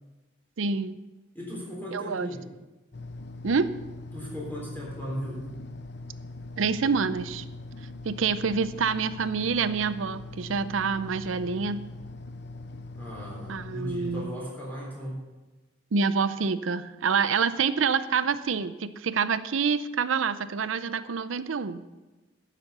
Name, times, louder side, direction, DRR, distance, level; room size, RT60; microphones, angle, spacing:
voice 1, 0.6-1.0 1.9-2.3 3.4-3.7 6.6-7.4 8.0-11.8 13.5-14.3 15.9-21.8, right 5 dB, 90° right, 14 dB, 0.6 m, -27 dB
voice 2, 1.3-2.4 4.1-5.4 12.9-15.2, equal, 10° left, -4 dB, 3.8 m, -37 dB
sound 1, 2.9-14.3, left 2 dB, 60° left, 0.7 m, -41 dB
10.5 x 7.4 x 6.8 m, 1.1 s
head